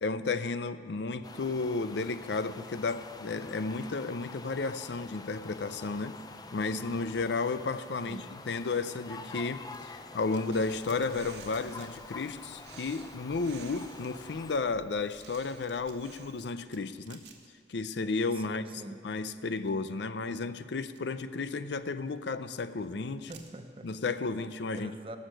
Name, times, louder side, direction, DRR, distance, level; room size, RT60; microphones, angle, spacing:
voice 1, 0.0-6.2 6.5-17.2 17.7-18.6 19.0-23.3 23.8-24.9, left 3 dB, 75° left, 13 dB, 0.5 m, -33 dB
sound 1, 1.2-14.6, left 3 dB, 20° left, 0.5 m, -47 dB
sound 2, 8.6-13.2 13.6-18.0 18.3-18.9 19.4-23.9, right 7 dB, 90° right, 1.5 m, -59 dB
Breathing, 10.5-16.5, right 6 dB, 70° right, 0.8 m, -53 dB
voice 2, 18.4-19.1 23.3-23.9 24.7-25.2, right 1 dB, 30° right, 7 dB, 0.7 m, -44 dB
17.5 x 6.4 x 6.5 m, 2.4 s
head